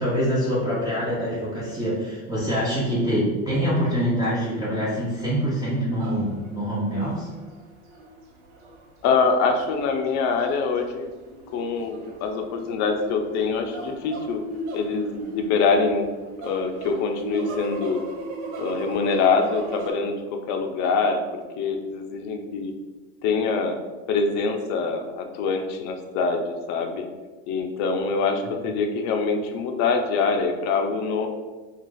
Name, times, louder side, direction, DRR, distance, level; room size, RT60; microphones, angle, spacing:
voice 1, 0.0-7.3, equal, 10° right, -8 dB, 0.9 m, -25 dB
sound 1, 5.9-19.9, right 2 dB, 65° right, 0.8 m, -37 dB
voice 2, 9.0-11.1 11.5-14.4 14.7-16.1 16.4-18.0 18.6-22.7 23.2-23.8 24.1-27.1 27.5-31.3, left 4 dB, 55° left, 4 dB, 0.6 m, -24 dB
2.4 x 2.4 x 3.9 m, 1.3 s
supercardioid pair, 95°, 34 cm